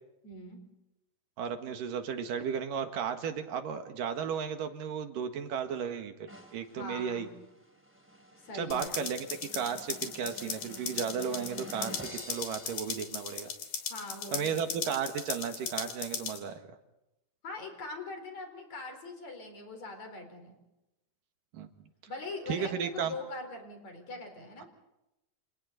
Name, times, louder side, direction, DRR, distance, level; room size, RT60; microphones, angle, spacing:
voice 1, 0.2-0.6 6.8-7.4 8.4-9.0 13.9-14.8 17.4-20.6 22.1-24.7, left 3 dB, 50° left, 5 dB, 5.5 m, -42 dB
voice 2, 1.4-7.3 8.5-9.3 9.5-13.5 14.3-16.8 21.5-21.7 22.5-23.1 24.6-24.7, right 7 dB, 70° right, 7 dB, 3.2 m, -34 dB
sound 1, 6.3-13.8, equal, 5° right, 3.2 m, -50 dB
sound 2, 8.7-16.4, left 7 dB, 85° left, 4.9 m, -38 dB
29.0 x 28.5 x 4.1 m, 0.92 s
omnidirectional pair, 4.1 m